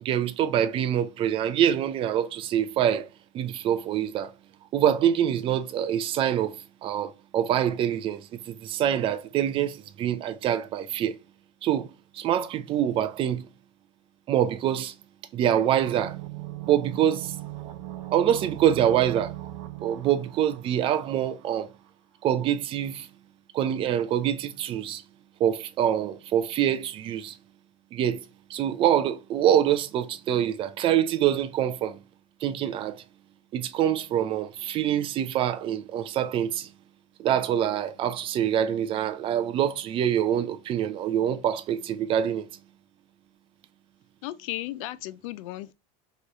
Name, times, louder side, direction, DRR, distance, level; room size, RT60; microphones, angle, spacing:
voice 1, 0.0-3.1 3.3-4.3 4.7-6.5 6.8-11.1 11.6-13.5 14.3-14.9 15.3-16.2 16.7-17.3 18.1-19.3 19.8-21.7 22.2-23.1 23.5-25.0 25.4-27.4 27.9-28.2 28.5-32.0 32.4-33.0 33.5-36.7 37.2-42.5, right 10 dB, 30° right, 0.4 m, -25 dB
sound 1, 15.7-21.4 21.7-21.8, right 15 dB, 80° right, 0.7 m, -39 dB
voice 2, 44.2-45.7, left 16 dB, 80° left, 0.4 m, -35 dB
4.7 x 3.1 x 2.6 m
cardioid pair, 150°, 17 cm